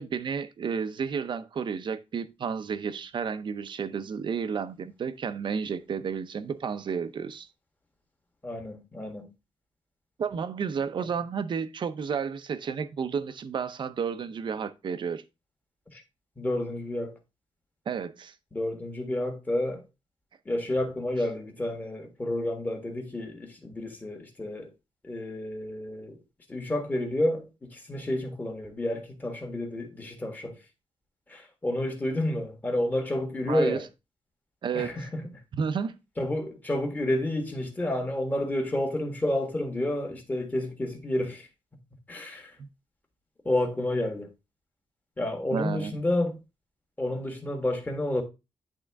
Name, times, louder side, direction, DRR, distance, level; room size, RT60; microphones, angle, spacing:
voice 1, 0.0-7.5 10.2-15.2 17.9-18.3 33.5-33.8 34.6-35.0 35.5-36.0 42.6-42.7 45.5-45.9, right 6 dB, 50° right, 0.6 m, -31 dB
voice 2, 8.4-9.3 11.0-11.1 15.9-16.0 16.4-17.2 18.5-19.8 20.4-24.7 25.0-26.2 26.5-30.5 31.3-33.8 34.7-35.4 36.2-41.5 42.1-42.6 43.4-44.3 45.2-46.4 47.0-48.2, left 1 dB, 15° left, 1.5 m, -30 dB
10.0 x 3.7 x 3.4 m
wide cardioid pair, 160°, 10 cm